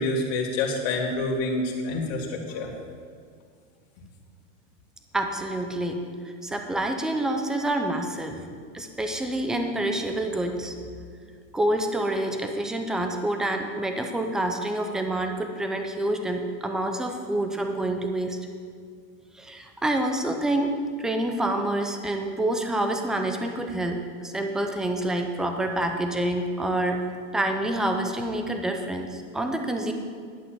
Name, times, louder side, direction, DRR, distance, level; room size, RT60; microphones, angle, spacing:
voice 1, 0.0-2.7, left 2 dB, 50° left, 0 dB, 2.4 m, -27 dB
voice 2, 5.1-6.0 6.4-8.5 8.7-10.7 11.5-18.4 19.3-27.0 27.3-29.9, right 1 dB, ahead, 5 dB, 0.4 m, -27 dB
11.0 x 5.9 x 7.7 m, 2.2 s
supercardioid pair, 145°, 39 cm